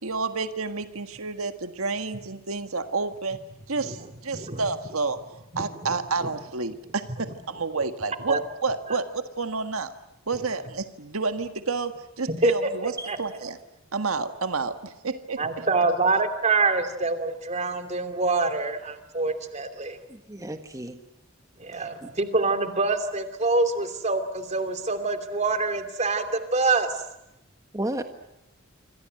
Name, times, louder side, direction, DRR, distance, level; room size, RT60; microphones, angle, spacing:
voice 1, 0.0-3.4 3.7-5.2 5.5-9.9 10.3-12.9 13.2-13.6 13.9-15.7, right 4 dB, 75° right, 8 dB, 1.7 m, -30 dB
voice 2, 15.4-20.0 21.6-26.9, right 3 dB, 35° right, 8 dB, 2.8 m, -25 dB
voice 3, 20.1-21.0 21.7-22.1 27.7-28.0, right 1 dB, 15° right, 7 dB, 1.5 m, -33 dB
27.5 x 25.5 x 7.8 m, 0.89 s
head